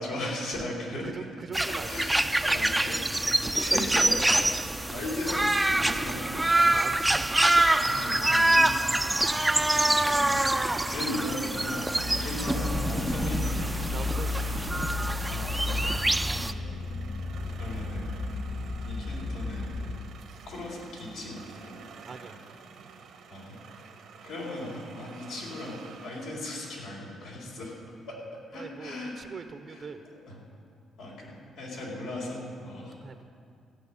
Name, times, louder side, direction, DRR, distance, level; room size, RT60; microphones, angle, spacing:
voice 1, 0.0-1.1 1.9-2.2 2.5-3.1 3.4-4.4 4.9-6.4 7.7-13.9 15.3-15.9 17.6-18.2 18.9-19.8 20.4-21.8 23.3-23.6 24.2-27.7 28.1-28.2 28.5-29.1 29.7-29.8 30.3-30.4 31.0-33.0, left 1 dB, 85° left, -3 dB, 4.1 m, -37 dB
voice 2, 0.9-2.1 2.4-2.6 3.4-4.0 4.5-4.7 6.6-7.5 8.6-8.7 9.5-10.2 13.9-14.5 22.0-22.5 28.5-30.0 33.0-33.2, right 5 dB, 45° right, 8 dB, 0.8 m, -42 dB
sound 1, 1.5-16.5, right 1 dB, 10° right, 0.5 m, -26 dB
sound 2, 9.2-26.8, right 6 dB, 75° right, 1.2 m, -49 dB
sound 3, 12.0-20.0, left 3 dB, 60° left, 2.5 m, -33 dB
14.5 x 6.3 x 9.7 m, 2.3 s
cardioid pair, 90°, 0 cm